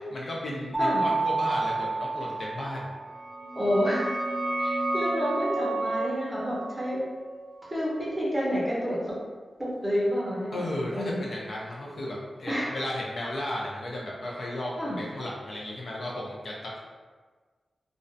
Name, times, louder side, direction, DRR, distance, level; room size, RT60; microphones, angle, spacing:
voice 1, 0.1-2.9 10.5-16.8, left 1 dB, 55° left, -4 dB, 0.4 m, -34 dB
Mallet percussion, 0.7-3.2, right 3 dB, 35° left, 0.9 m, -29 dB
sound 1, 3.1-8.5, right 2 dB, 90° right, 0.5 m, -32 dB
voice 2, 3.5-4.0 4.6-7.0 7.7-9.2 9.6-10.7 10.9-11.2 12.5-12.7 14.8-15.0, equal, 10° right, -6 dB, 0.6 m, -29 dB
2.4 x 2.1 x 2.5 m, 1.4 s
wide cardioid pair, 145°, 0 cm